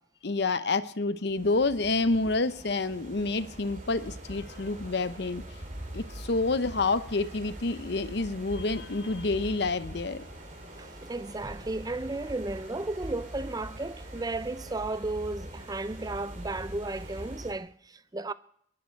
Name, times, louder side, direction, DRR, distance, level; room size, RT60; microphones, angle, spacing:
voice 1, 0.2-5.4 5.9-10.2, left 3 dB, 60° left, 0.8 m, -28 dB
sound 1, 1.4-17.5, right 1 dB, 40° right, 3.0 m, -43 dB
sound 2, 3.3-14.8, right 2 dB, 85° right, 6.2 m, -55 dB
voice 2, 10.8-18.3, right 2 dB, 20° right, 0.5 m, -34 dB
22.0 x 11.0 x 4.5 m
head